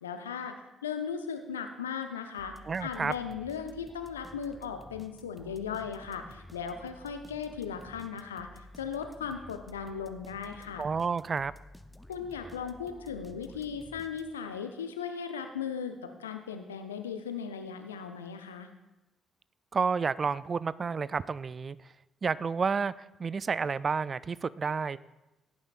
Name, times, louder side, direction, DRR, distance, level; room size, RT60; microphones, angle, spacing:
voice 1, 0.0-10.9 12.1-18.7, left 7 dB, 85° left, 7 dB, 0.7 m, -37 dB
sound 1, 2.4-14.6, left 1 dB, 5° left, 0.8 m, -52 dB
voice 2, 2.7-3.1 10.8-11.5 19.7-21.8 22.2-25.0, right 5 dB, 40° right, 19 dB, 0.3 m, -30 dB
17.5 x 9.7 x 2.5 m, 1.0 s
figure-of-eight pair, 45°, 0 cm